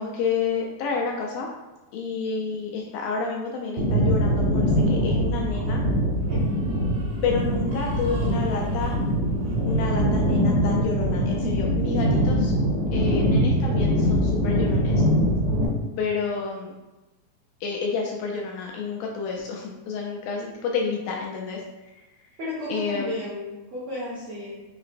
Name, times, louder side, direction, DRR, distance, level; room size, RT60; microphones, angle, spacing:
voice 1, 0.0-1.5 1.9-5.8 7.2-8.9 9.7-12.5 12.9-15.0 16.0-16.7 17.6-21.6 22.7-23.1, left 5 dB, 80° left, -1 dB, 1.9 m, -29 dB
sound 1, 3.8-15.7, equal, 60° right, 1.9 m, -23 dB
voice 2, 22.4-24.6, left 1 dB, 80° right, -9 dB, 1.2 m, -33 dB
5.7 x 3.0 x 2.5 m, 1.1 s
omnidirectional pair, 4.0 m